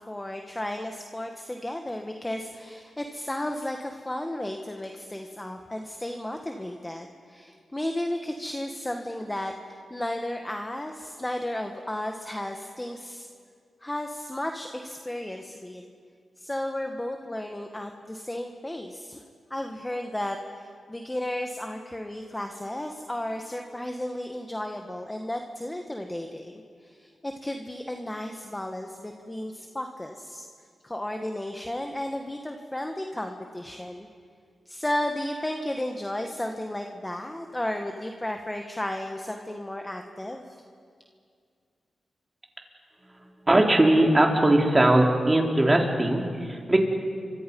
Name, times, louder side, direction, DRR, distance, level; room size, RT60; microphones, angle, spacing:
voice 1, 0.1-13.3 13.8-15.9 16.4-19.2 19.5-26.5 26.8-30.5 30.8-34.1 34.7-40.6, left 1 dB, 15° left, 4 dB, 1.7 m, -33 dB
voice 2, 43.5-46.8, right 1 dB, 25° right, 1 dB, 3.8 m, -20 dB
29.5 x 25.0 x 5.5 m, 2.2 s
cardioid pair, 65°, 0 cm